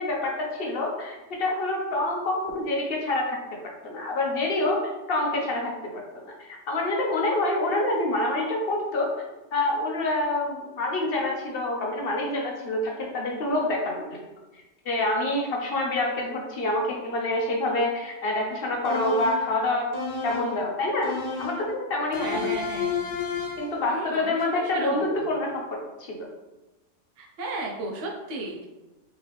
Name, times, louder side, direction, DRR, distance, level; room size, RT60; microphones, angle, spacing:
voice 1, 0.0-3.6 3.8-4.8 5.1-9.1 9.5-14.2 14.9-19.9 20.2-22.5 23.6-26.2, left 2 dB, 60° left, 0 dB, 0.8 m, -27 dB
sound 1, 18.8-19.5 19.9-20.6 21.0-21.7 22.1-23.8, left 6 dB, 80° left, 1.1 m, -31 dB
voice 2, 22.2-23.1 23.9-25.3 27.2-28.7, right 2 dB, 80° right, -1 dB, 1.1 m, -35 dB
3.4 x 3.2 x 3.1 m, 1.1 s
omnidirectional pair, 1.3 m